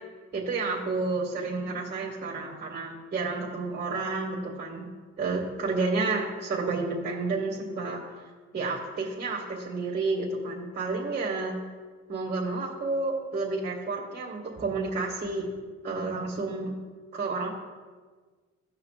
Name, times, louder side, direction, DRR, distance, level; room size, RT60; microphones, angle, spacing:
voice 1, 0.3-4.9 5.2-8.0 8.5-11.6 12.1-15.4 15.8-16.7 17.1-17.5, right 3 dB, 35° right, -4 dB, 2.1 m, -30 dB
15.5 x 5.7 x 2.5 m, 1.4 s
cardioid pair, 90°, 30 cm